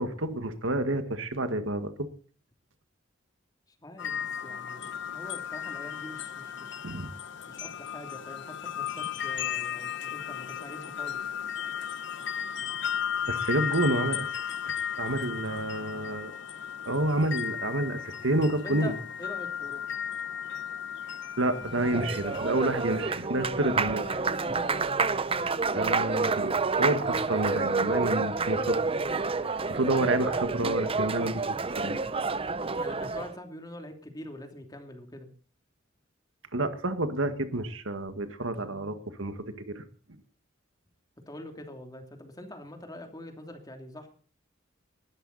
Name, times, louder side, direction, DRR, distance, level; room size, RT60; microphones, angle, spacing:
voice 1, 0.0-2.1 6.8-7.1 13.3-14.3 15.0-16.3 16.9-18.9 21.4-24.0 25.7-28.8 29.4-32.0 36.5-39.4 39.7-39.8, right 2 dB, 80° right, 9 dB, 1.7 m, -29 dB
voice 2, 3.8-6.8 7.5-11.3 18.6-19.9 23.8-25.0 32.8-35.3 41.3-44.1, left 1 dB, 20° left, 4 dB, 2.9 m, -44 dB
sound 1, 4.0-23.1, left 9 dB, 65° left, 1.0 m, -35 dB
Applause, 21.5-33.3, right 4 dB, 30° right, 0.7 m, -29 dB
20.5 x 13.0 x 4.1 m, 0.43 s
head